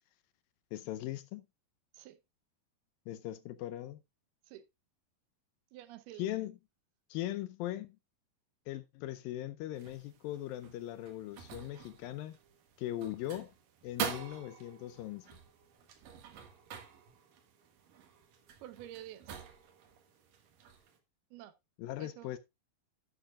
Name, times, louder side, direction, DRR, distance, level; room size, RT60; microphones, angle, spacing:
voice 1, 0.7-1.4 3.1-4.0 6.2-6.6 7.1-8.0 8.7-12.4 12.8-13.5 13.8-15.3 21.8-22.4, left 13 dB, 80° left, 2.2 m, -39 dB
voice 2, 5.7-6.3 18.6-19.4 21.3-21.5 22.0-22.4, right 13 dB, 85° right, 3.0 m, -49 dB
sound 1, 9.7-21.0, right 8 dB, 65° right, 3.2 m, -46 dB
12.0 x 10.0 x 2.3 m
omnidirectional pair, 4.5 m